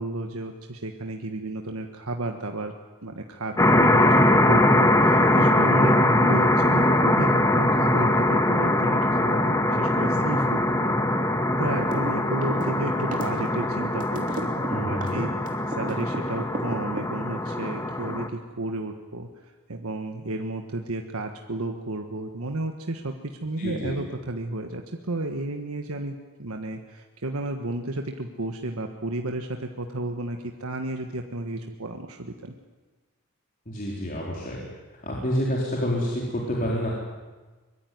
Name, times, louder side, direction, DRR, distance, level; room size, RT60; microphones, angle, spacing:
voice 1, 0.0-2.7 3.0-11.2 11.6-32.5, right 2 dB, 80° right, 4 dB, 1.5 m, -32 dB
sound 1, 3.6-18.3, left 1 dB, 15° left, 1.5 m, -22 dB
sound 2, 11.8-12.1 12.4-16.2 16.5-17.4, right 1 dB, 35° right, 3.1 m, -33 dB
voice 2, 14.7-15.2 23.6-24.0 33.7-34.6 35.0-36.9, equal, 40° left, -3 dB, 4.3 m, -28 dB
24.0 x 22.0 x 9.4 m, 1.3 s
head